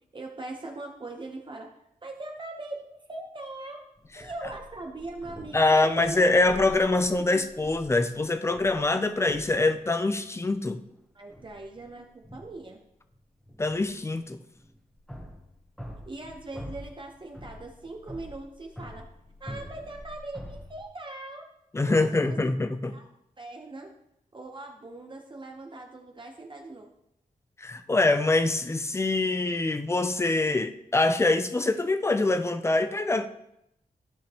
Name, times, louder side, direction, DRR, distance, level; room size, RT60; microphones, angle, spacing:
voice 1, 0.1-1.7 2.0-3.8 4.1-6.5 11.1-12.8 16.1-19.0 19.4-21.4 21.8-22.4 22.9-23.1 23.4-23.9 24.3-26.9, right 2 dB, 35° right, 0.9 m, -40 dB
sound 1, 4.0-10.0 10.2-11.0 11.3-12.8 13.1-20.8, equal, ahead, 1.0 m, -46 dB
voice 2, 5.5-10.8 13.6-14.4 21.7-22.9 27.6-33.3, left 2 dB, 20° left, 0.5 m, -24 dB
13.5 x 5.1 x 2.9 m
wide cardioid pair, 130°, 15 cm